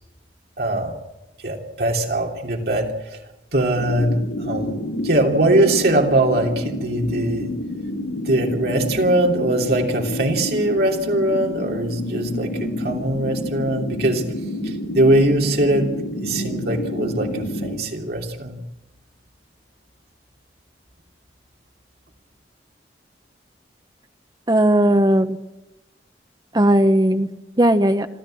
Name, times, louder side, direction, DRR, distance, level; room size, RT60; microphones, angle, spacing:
voice 1, 0.6-0.9 1.4-3.2 3.5-7.5 8.2-14.2 14.6-15.9 16.2-18.6, right 1 dB, 55° right, 1 dB, 3.1 m, -21 dB
sound 1, 3.7-17.8, left 1 dB, 80° left, 3.2 m, -29 dB
voice 2, 24.5-25.4 26.5-27.3 27.6-28.1, right 1 dB, 20° right, 8 dB, 1.0 m, -16 dB
26.5 x 13.5 x 7.7 m, 0.99 s
head